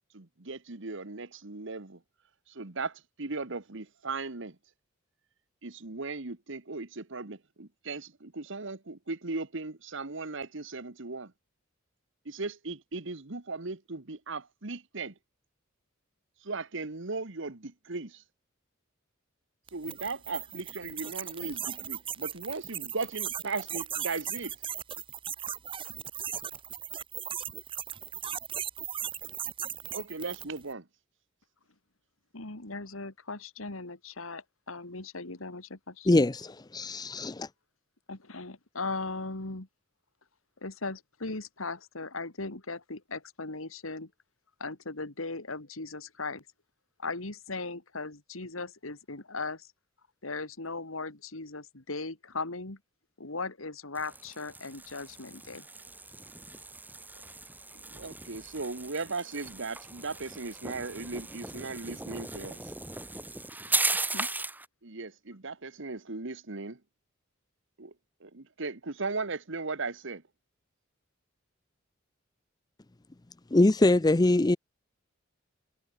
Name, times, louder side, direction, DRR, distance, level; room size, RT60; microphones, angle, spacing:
voice 1, 0.1-2.0 2.5-4.6 5.6-11.3 12.2-15.1 16.4-18.2 19.7-24.5 29.9-30.9 57.7-62.7 64.8-66.8 67.8-67.9 68.2-70.2, right 3 dB, 65° right, 1.5 m, -37 dB
sound 1, 19.7-30.6, right 9 dB, 25° right, 0.7 m, -37 dB
voice 2, 32.3-36.3 38.1-39.7 40.6-44.1 44.6-46.4 47.0-49.7 50.2-52.8 53.2-55.7 64.1-64.3, left 3 dB, 80° left, 2.6 m, -38 dB
voice 3, 36.1-37.5 73.5-74.6, left 2 dB, 20° left, 0.5 m, -23 dB
sound 2, 53.9-64.7, right 3 dB, 10° right, 1.9 m, -37 dB
head